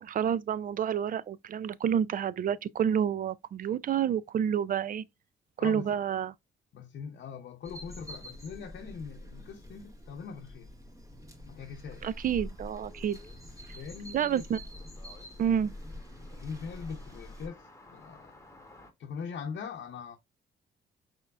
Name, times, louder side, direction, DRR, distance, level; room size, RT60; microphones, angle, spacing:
voice 1, 0.0-5.0 5.6-6.3 12.0-13.2 14.1-14.6 15.4-15.7, right 9 dB, 45° right, 0.4 m, -29 dB
voice 2, 5.6-5.9 6.7-10.7 11.4-12.1 13.7-14.4 16.2-18.3 19.0-20.2, left 6 dB, 60° left, 0.7 m, -41 dB
sound 1, 7.6-17.5, left 1 dB, 15° right, 1.7 m, -46 dB
sound 2, 12.1-18.9, left 2 dB, 15° left, 1.3 m, -57 dB
4.5 x 4.4 x 2.4 m
cardioid pair, 90°, 20 cm